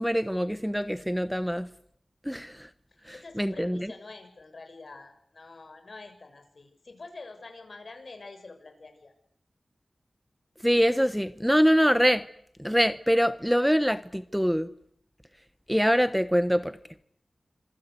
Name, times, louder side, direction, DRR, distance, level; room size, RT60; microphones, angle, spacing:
voice 1, 0.0-1.7 2.2-2.7 3.1-3.9 10.6-12.2 12.6-14.7 15.7-16.8, equal, ahead, 1.0 m, -24 dB
voice 2, 3.1-9.1, left 3 dB, 60° left, 6.7 m, -46 dB
26.5 x 22.0 x 8.3 m
wide cardioid pair, 70°, 0 cm